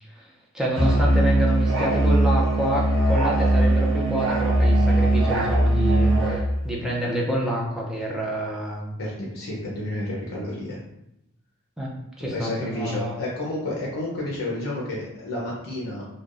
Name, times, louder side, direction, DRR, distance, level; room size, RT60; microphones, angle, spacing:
voice 1, 0.0-8.9 11.8-13.2, equal, 5° right, -4 dB, 0.4 m, -28 dB
Musical instrument, 0.7-6.5, right 1 dB, 65° right, 0.7 m, -20 dB
voice 2, 9.0-10.8 12.3-16.1, left 1 dB, 85° left, -4 dB, 0.6 m, -30 dB
3.3 x 2.2 x 2.4 m, 0.85 s
head